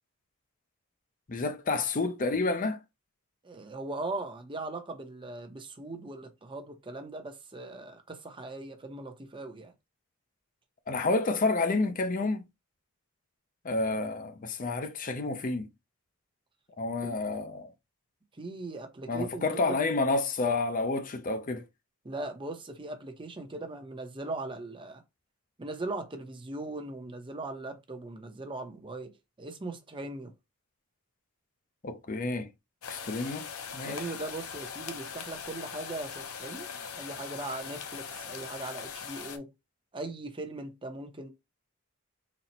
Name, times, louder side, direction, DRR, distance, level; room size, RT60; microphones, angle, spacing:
voice 1, 1.3-2.8 10.9-12.4 13.6-15.7 16.8-17.7 19.1-21.6 31.8-32.5 32.9-33.5 33.7-34.0, left 3 dB, 40° left, 0.5 m, -29 dB
voice 2, 3.4-9.7 17.0-17.2 18.4-19.8 22.0-25.0 25.6-30.3 33.8-39.5 39.9-41.3, right 2 dB, 25° right, 0.6 m, -39 dB
sound 1, 32.8-39.4, left 7 dB, 80° left, 0.7 m, -41 dB
4.1 x 2.0 x 4.2 m
head